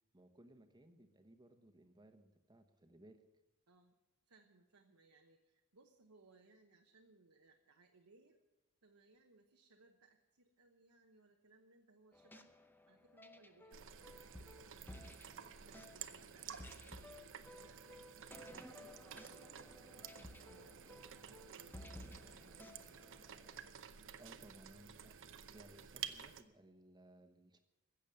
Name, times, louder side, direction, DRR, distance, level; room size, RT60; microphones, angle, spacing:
voice 1, 0.1-3.2 24.1-25.2 25.5-27.6, right 1 dB, 20° right, 7 dB, 1.2 m, -62 dB
voice 2, 3.7-4.0 4.2-8.4 8.8-12.5 12.9-15.0 15.4-17.8 18.3-21.9 22.2-22.8, right 3 dB, 80° right, 2 dB, 1.1 m, -67 dB
sound 1, 12.1-23.7, left 1 dB, 10° left, 0.7 m, -56 dB
sound 2, 13.7-26.4, right 8 dB, 60° right, 0.8 m, -52 dB
15.5 x 7.3 x 9.3 m, 1.0 s
head